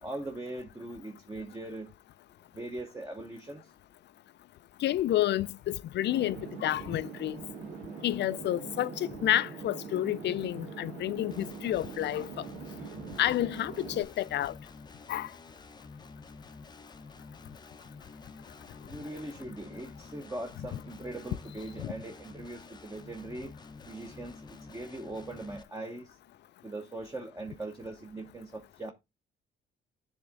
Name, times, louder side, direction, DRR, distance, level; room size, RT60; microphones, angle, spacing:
voice 1, 0.0-1.9 2.5-3.7 18.9-23.5 23.8-26.2 26.6-28.9, right 2 dB, 15° right, 1.0 m, -40 dB
voice 2, 4.8-7.4 8.0-12.3 13.2-14.5 15.1-15.3 21.8-21.9, left 13 dB, 60° left, 0.4 m, -30 dB
sound 1, 6.1-14.0, right 5 dB, 90° right, 1.5 m, -43 dB
sound 2, 11.3-25.6, left 4 dB, 20° left, 0.6 m, -50 dB
10.0 x 3.6 x 3.7 m
cardioid pair, 90°, 20 cm